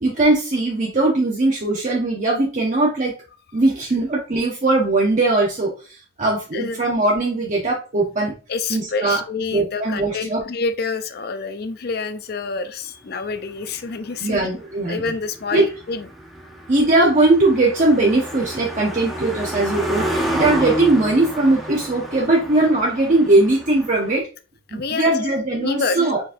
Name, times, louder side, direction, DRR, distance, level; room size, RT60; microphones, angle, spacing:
voice 1, 0.0-3.1 3.5-8.4 8.7-9.2 9.5-10.4 14.2-15.0 15.5-15.7 16.7-24.3 24.7-26.2, right 2 dB, 45° right, -2 dB, 0.8 m, -19 dB
voice 2, 8.5-14.4 14.9-16.1 24.7-25.3 25.6-26.1, left 4 dB, 55° left, 10 dB, 0.5 m, -27 dB
Car passing by, 13.0-24.2, equal, ahead, 0.8 m, -30 dB
4.7 x 4.0 x 2.6 m, 0.34 s
head